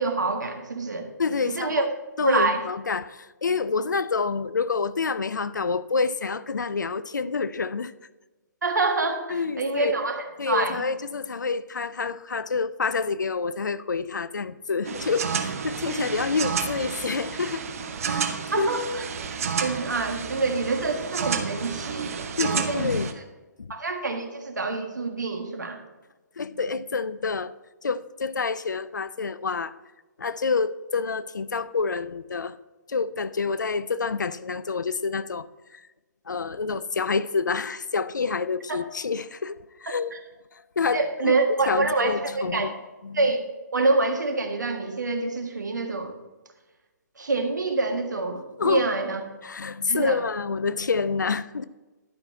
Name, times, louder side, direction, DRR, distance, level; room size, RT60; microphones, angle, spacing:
voice 1, 0.0-1.1 1.5-1.9 2.2-2.6 8.6-10.8 18.5-19.0 19.6-22.9 23.7-25.8 38.7-38.8 40.1-40.2 40.9-42.7 43.1-43.4 43.7-46.1 47.2-49.2 49.9-50.2, right 3 dB, 70° right, 5 dB, 1.6 m, -26 dB
voice 2, 1.2-1.8 2.2-7.9 9.3-9.9 10.4-17.7 18.0-18.7 22.4-23.1 23.6-23.7 26.4-27.5 27.8-29.7 30.2-32.6 32.9-35.5 35.7-35.8 36.3-40.1 40.5-41.3 41.7-42.7 43.0-43.2 48.6-48.8 49.4-51.6, left 4 dB, 75° left, 16 dB, 0.5 m, -28 dB
sound 1, 14.8-23.1, right 6 dB, 50° right, 0.9 m, -30 dB
11.5 x 5.8 x 4.3 m, 1.2 s
figure-of-eight pair, 130°, 10 cm